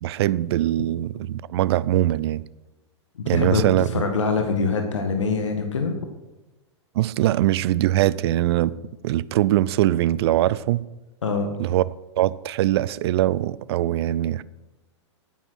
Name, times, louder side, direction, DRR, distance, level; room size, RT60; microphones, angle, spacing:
voice 1, 0.0-2.4 3.3-3.9 7.0-8.7 9.0-10.8 11.6-11.8 12.2-14.4, right 14 dB, 60° right, 0.5 m, -22 dB
voice 2, 3.2-5.9 11.2-11.5, left 4 dB, 85° left, 1.8 m, -24 dB
9.6 x 9.6 x 6.3 m
hypercardioid pair, 115°, 15 cm